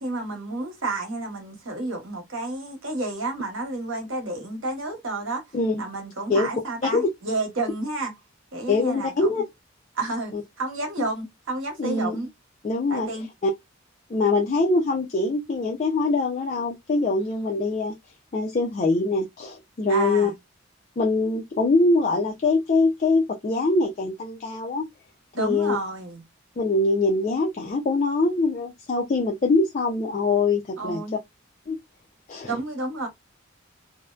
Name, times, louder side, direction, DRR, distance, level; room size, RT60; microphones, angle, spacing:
voice 1, 0.0-5.4 5.8-8.1 8.5-9.3 9.9-12.3 12.9-13.3 17.2-17.4 19.9-20.4 25.3-26.2 30.8-31.1 32.4-33.1, right 2 dB, 80° right, 1.0 m, -30 dB
voice 2, 8.7-9.4 10.3-10.4 11.8-12.2 12.6-13.1 13.4-13.5 14.1-17.9 18.3-20.3 21.0-24.9 25.4-25.8 26.6-31.0 31.7-31.8 32.3-32.6, left 3 dB, 35° left, 0.4 m, -23 dB
2.6 x 2.1 x 2.2 m
head